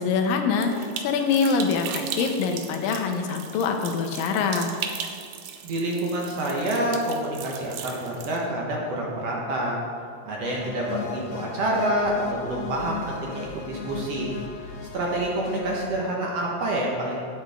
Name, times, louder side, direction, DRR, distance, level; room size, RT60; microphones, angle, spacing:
voice 1, 0.0-4.7, left 5 dB, 90° left, 4 dB, 2.6 m, -24 dB
sound 1, 0.6-8.4, right 7 dB, 80° right, 1.7 m, -37 dB
voice 2, 5.6-9.8 10.2-14.3 14.9-17.2, right 1 dB, 60° right, -3 dB, 1.9 m, -27 dB
sound 2, 10.4-15.8, left 7 dB, 70° left, 2.0 m, -37 dB
9.6 x 9.4 x 3.6 m, 2.3 s
omnidirectional pair, 3.9 m